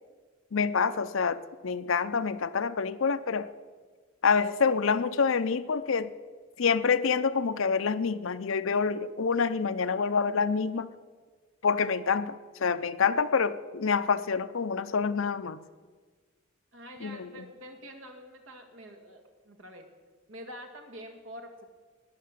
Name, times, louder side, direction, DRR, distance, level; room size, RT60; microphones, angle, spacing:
voice 1, 0.5-3.5 4.2-6.1 6.6-10.9 11.6-15.6 17.0-17.5, left 5 dB, 75° left, 13 dB, 0.6 m, -27 dB
voice 2, 16.7-19.9 20.3-21.7, equal, 75° right, 5 dB, 1.9 m, -46 dB
18.5 x 6.7 x 7.5 m, 1.4 s
head